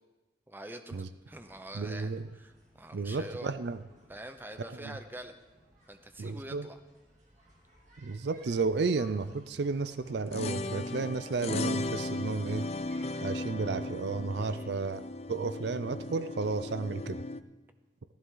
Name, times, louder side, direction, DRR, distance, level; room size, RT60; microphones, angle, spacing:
voice 1, 0.5-3.5 4.1-5.3 5.9-6.8 14.3-14.8, right 1 dB, 10° right, 7 dB, 0.8 m, -45 dB
sound 1, 1.2-13.4, equal, 40° right, 2.7 m, -60 dB
voice 2, 1.7-2.2 2.9-3.8 4.7-5.0 6.2-6.7 8.0-12.7 13.2-15.0 15.3-17.2, right 4 dB, 65° right, 13 dB, 0.5 m, -32 dB
sound 2, 10.1-17.4, left 2 dB, 35° left, 0.4 m, -37 dB
15.0 x 14.5 x 3.9 m, 1.1 s
head